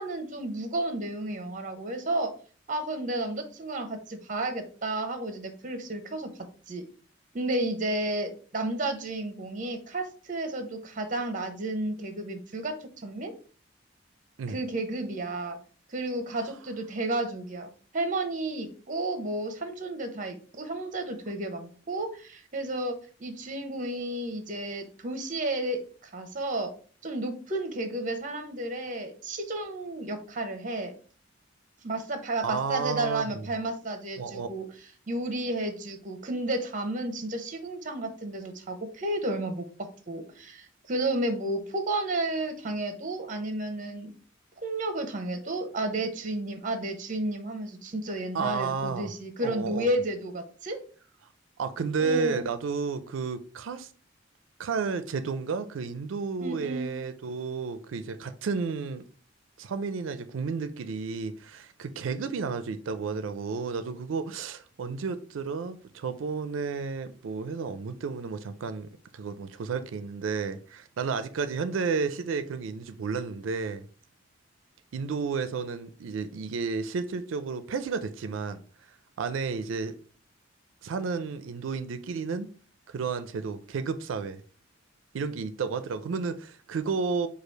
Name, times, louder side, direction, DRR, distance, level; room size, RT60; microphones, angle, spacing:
voice 1, 0.0-2.3 2.7-6.3 6.7-6.8 7.3-13.3 14.5-15.6 15.9-26.7 27.0-30.9 31.8-34.7 35.1-44.1 44.6-50.8 52.0-52.5 56.4-57.0, right 2 dB, 40° right, 0.9 m, -32 dB
voice 2, 32.4-33.3 34.2-34.5 48.3-49.1 49.4-49.9 51.6-53.9 54.6-59.0 59.6-68.9 69.1-73.9 74.9-78.6 79.2-79.9 80.8-82.5 82.9-84.4 85.1-87.3, right 5 dB, 90° right, 0.4 m, -32 dB
4.9 x 2.4 x 4.5 m
head